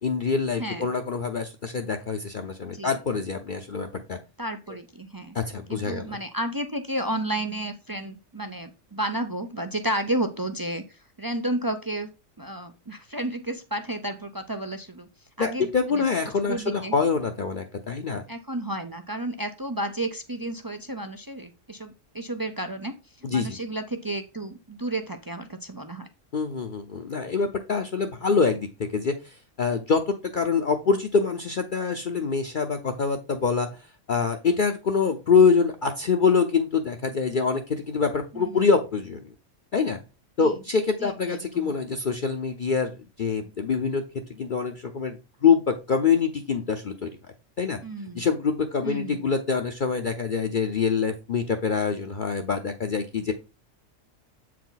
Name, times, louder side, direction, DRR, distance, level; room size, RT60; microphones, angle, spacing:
voice 1, 0.0-4.2 5.3-6.2 15.4-18.2 23.2-23.6 26.3-33.8 34.1-39.2 39.7-40.0 40.4-42.9 43.2-44.0 44.3-47.1 47.6-47.8 48.1-53.3, left 5 dB, 45° left, 4 dB, 0.8 m, -25 dB
voice 2, 0.6-0.9 2.7-2.9 4.4-5.4 5.7-12.1 12.4-15.1 15.4-16.0 16.4-16.9 18.3-22.9 23.3-26.1 38.3-38.6 40.4-40.6 41.0-41.7 47.8-48.3 48.8-49.2, right 1 dB, 35° right, 7 dB, 0.3 m, -32 dB
8.0 x 4.7 x 4.0 m, 0.29 s
omnidirectional pair, 1.3 m